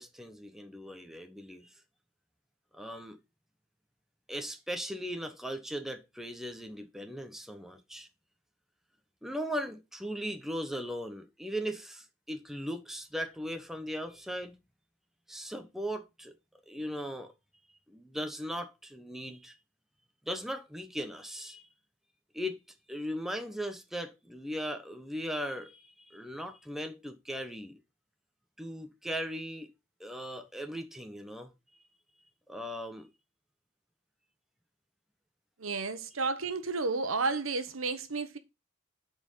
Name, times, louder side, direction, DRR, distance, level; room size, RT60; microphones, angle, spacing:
voice 1, 0.0-1.7 2.7-3.2 4.3-8.1 9.2-14.6 15.3-16.4 16.7-17.3 17.9-19.5 20.2-21.6 22.3-22.6 22.9-27.8 28.6-29.7 30.0-31.5 32.5-33.1, equal, ahead, 1.0 m, -38 dB
voice 2, 35.6-38.4, right 3 dB, 85° right, 1.2 m, -32 dB
7.7 x 4.5 x 5.6 m
head